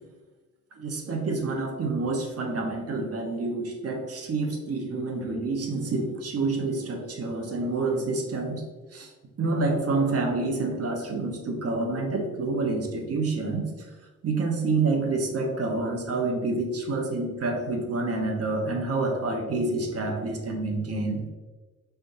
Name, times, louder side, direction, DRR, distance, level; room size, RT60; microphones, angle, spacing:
voice 1, 0.8-8.6 8.9-9.1 9.4-13.6 14.2-21.2, right 3 dB, 50° right, 2 dB, 1.0 m, -28 dB
5.2 x 3.4 x 2.7 m, 1.3 s
cardioid pair, 90°, 32 cm